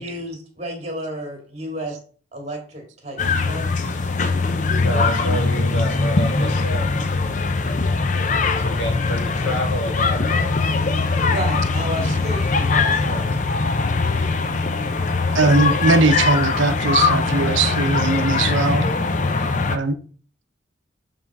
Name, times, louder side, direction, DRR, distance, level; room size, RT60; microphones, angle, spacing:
voice 1, 0.0-2.0 2.3-3.2 3.5-3.8 9.4-9.7 11.2-13.4 19.6-19.8, right 1 dB, 35° right, 2.1 m, -32 dB
sound 1, 3.2-19.8, left 3 dB, 40° left, 0.5 m, -21 dB
voice 2, 4.8-6.9 8.6-10.5, equal, 75° left, 2.1 m, -28 dB
voice 3, 15.3-18.9 19.7-20.0, right 3 dB, 80° right, 0.7 m, -20 dB
7.5 x 3.7 x 4.7 m
head